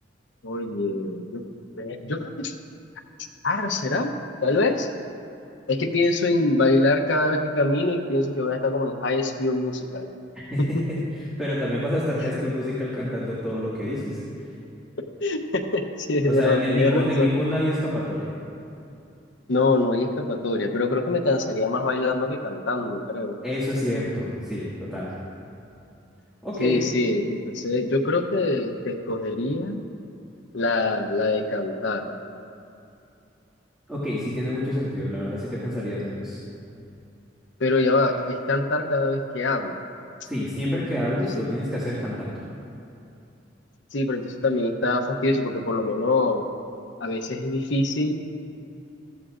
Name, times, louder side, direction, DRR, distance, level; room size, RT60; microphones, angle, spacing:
voice 1, 0.4-1.4 1.8-2.5 3.4-4.1 4.4-4.9 5.7-10.1 10.6-10.8 15.2-17.3 19.5-23.4 26.6-29.8 30.5-32.1 37.6-39.8 41.2-41.4 43.9-46.4 47.0-48.2, left 2 dB, 75° left, 4 dB, 0.8 m, -24 dB
voice 2, 10.3-10.8 11.4-14.2 16.2-18.3 23.4-25.1 26.4-26.8 33.9-36.4 40.2-42.4, equal, 5° right, -9 dB, 1.9 m, -27 dB
14.0 x 14.0 x 2.5 m, 2.7 s
head